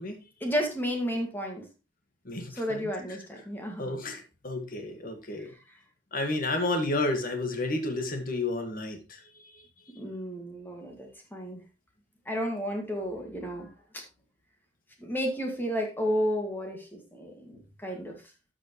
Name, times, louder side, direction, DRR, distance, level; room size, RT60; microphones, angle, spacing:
voice 1, 0.4-1.7 2.5-3.8 9.9-11.6 12.3-14.0 15.0-18.2, equal, 10° left, 1 dB, 2.2 m, -32 dB
voice 2, 2.3-2.9 3.8-5.5 6.1-9.7, left 2 dB, 50° left, 5 dB, 1.9 m, -31 dB
12.5 x 6.1 x 3.2 m, 0.29 s
head